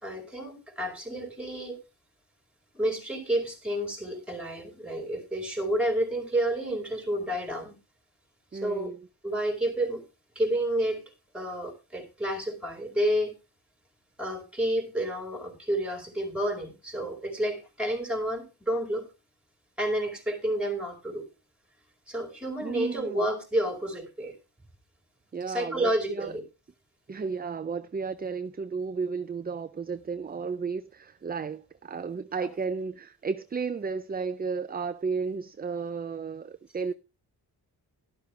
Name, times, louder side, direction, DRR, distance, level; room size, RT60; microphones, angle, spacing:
voice 1, 0.0-1.8 2.7-7.8 8.5-8.9 9.2-10.1 10.3-11.0 11.3-13.3 14.2-19.1 19.8-21.3 22.1-24.3 25.5-26.4 32.4-32.5, right 1 dB, 5° right, 4.7 m, -30 dB
voice 2, 8.5-9.1 22.6-23.3 25.3-26.4 27.1-36.9, right 5 dB, 25° right, 0.5 m, -33 dB
12.0 x 12.0 x 3.2 m
cardioid pair, 90°, 38 cm